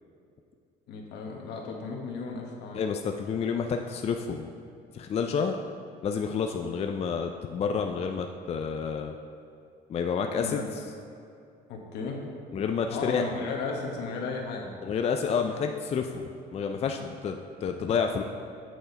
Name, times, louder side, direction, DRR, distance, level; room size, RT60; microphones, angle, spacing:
voice 1, 0.9-2.8 10.4-10.6 11.7-12.2 12.9-14.7, left 4 dB, 75° left, 0 dB, 1.3 m, -34 dB
voice 2, 2.7-4.5 4.9-5.6 6.0-9.1 9.9-10.6 12.5-13.2 14.8-18.2, left 6 dB, 40° left, 4 dB, 0.4 m, -29 dB
8.0 x 6.3 x 4.0 m, 2.5 s
cardioid pair, 110°, 17 cm